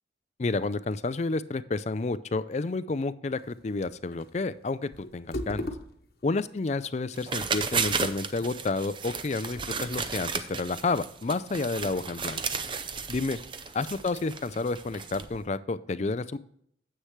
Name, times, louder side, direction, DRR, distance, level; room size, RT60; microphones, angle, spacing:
voice 1, 0.4-5.7 6.2-12.4 13.1-13.4 13.7-16.4, left 3 dB, 35° left, 15 dB, 0.4 m, -30 dB
sound 1, 3.4-14.6, left 1 dB, 55° left, 1.1 m, -45 dB
sound 2, 7.1-15.4, right 5 dB, 25° right, 0.6 m, -33 dB
9.8 x 7.9 x 3.1 m, 0.68 s
head